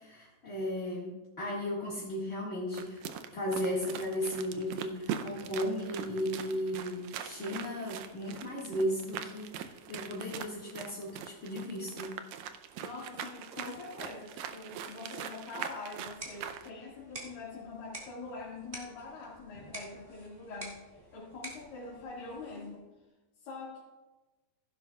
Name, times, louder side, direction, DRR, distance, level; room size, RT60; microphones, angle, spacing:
voice 1, 0.0-3.0 3.3-12.2, equal, 25° left, -7 dB, 1.5 m, -35 dB
sound 1, 2.7-16.7, right 9 dB, 90° right, 1.6 m, -42 dB
voice 2, 12.8-22.8 23.4-23.8, left 3 dB, 85° left, -7 dB, 3.8 m, -44 dB
sound 2, 15.9-22.9, right 1 dB, 20° right, 1.8 m, -49 dB
15.5 x 12.0 x 2.4 m, 1.1 s
omnidirectional pair, 3.9 m